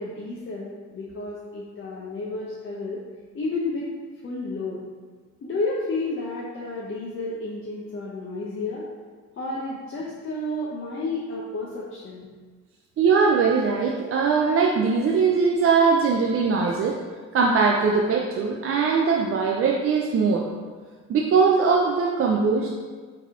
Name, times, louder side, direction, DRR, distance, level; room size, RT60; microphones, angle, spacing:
voice 1, 0.0-3.0 3.3-3.9 4.2-4.8 5.4-8.9 9.4-12.3, left 2 dB, 40° left, -5 dB, 0.6 m, -31 dB
voice 2, 13.0-17.0 17.3-20.5 21.1-22.7, right 5 dB, 50° right, 0 dB, 0.4 m, -21 dB
4.0 x 2.8 x 3.5 m, 1.5 s
cardioid pair, 90°, 30 cm